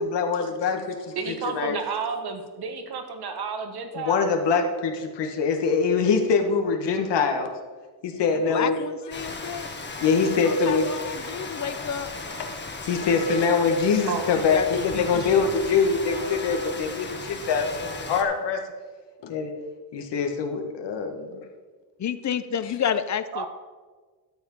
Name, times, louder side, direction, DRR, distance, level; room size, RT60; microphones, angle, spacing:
voice 1, 0.0-1.1 1.5-1.8 3.9-7.5 8.0-8.8 10.0-10.9 11.2-11.3 12.9-18.6 19.2-19.5 19.9-21.4, left 5 dB, 85° left, 4 dB, 1.6 m, -24 dB
voice 2, 1.1-4.2 14.1-14.3 23.3-23.5, right 5 dB, 65° right, 6 dB, 1.6 m, -31 dB
voice 3, 8.5-9.7 10.4-12.1 14.3-15.4 22.0-23.5, left 8 dB, 45° left, 13 dB, 0.6 m, -30 dB
Rain, 9.1-18.2, left 3 dB, 25° left, 1.3 m, -36 dB
12.5 x 7.2 x 5.4 m, 1.4 s
cardioid pair, 125°, 41 cm